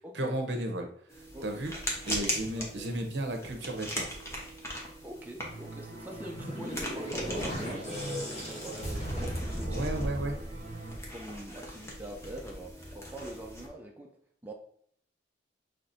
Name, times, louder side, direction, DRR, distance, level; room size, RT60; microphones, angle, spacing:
voice 1, 0.1-0.9 1.4-1.7 2.0-4.2 9.6-10.4, right 1 dB, 70° right, 4 dB, 0.8 m, -33 dB
sound 1, 1.1-13.7, equal, 15° left, 0.9 m, -40 dB
voice 2, 2.6-2.9 5.0-9.8 10.2-10.3 11.1-14.2 14.4-14.5, equal, 10° right, 0 dB, 0.5 m, -43 dB
sound 2, 5.4-11.0, right 1 dB, 45° right, 0.9 m, -45 dB
sound 3, 6.0-11.3, equal, 35° left, 1.3 m, -37 dB
5.9 x 3.3 x 2.6 m, 0.63 s
head